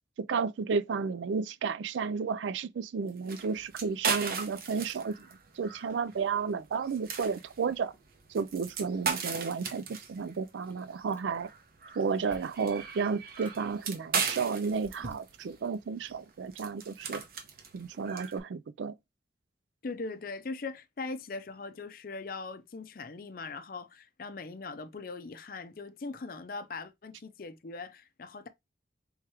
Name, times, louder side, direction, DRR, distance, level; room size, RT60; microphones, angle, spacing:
voice 1, 0.2-5.1 5.6-7.9 8.3-11.5 12.0-17.2 17.7-18.9, right 5 dB, 80° right, 0.4 m, -32 dB
sound 1, 3.1-18.4, right 5 dB, 50° right, 0.8 m, -38 dB
Chewing mastication, 10.6-11.5 11.8-12.7 13.2-13.6 14.2-15.6, left 1 dB, 10° left, 1.0 m, -51 dB
voice 2, 19.8-28.5, left 3 dB, 50° left, 0.5 m, -40 dB
3.6 x 2.9 x 4.6 m
head